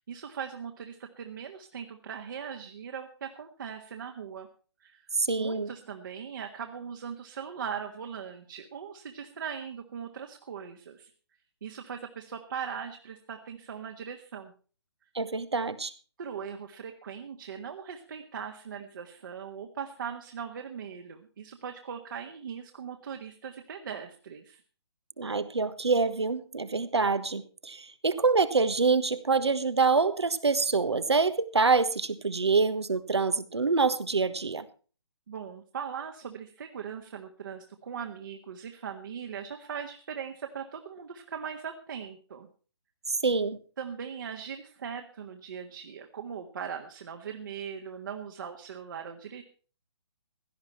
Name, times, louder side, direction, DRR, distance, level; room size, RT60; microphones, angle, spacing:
voice 1, 0.1-4.5 4.8-5.0 5.4-11.1 11.6-14.5 16.2-24.6 35.3-42.5 43.8-49.4, right 7 dB, 50° right, 3 dB, 1.7 m, -40 dB
voice 2, 5.2-5.7 15.1-15.9 25.2-34.7 43.2-43.6, right 4 dB, 70° right, 13 dB, 1.4 m, -26 dB
17.0 x 12.0 x 4.4 m, 0.39 s
figure-of-eight pair, 140°, 14 cm